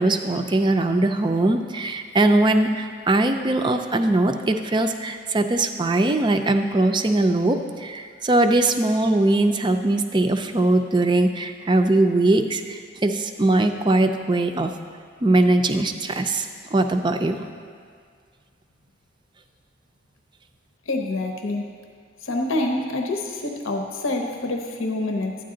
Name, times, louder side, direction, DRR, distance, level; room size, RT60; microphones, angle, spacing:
voice 1, 0.0-14.7 15.2-17.5, right 2 dB, 20° right, 7 dB, 0.4 m, -21 dB
voice 2, 20.9-21.7 22.2-25.4, left 2 dB, 75° left, 2 dB, 0.8 m, -26 dB
12.5 x 9.3 x 3.8 m, 2.1 s
head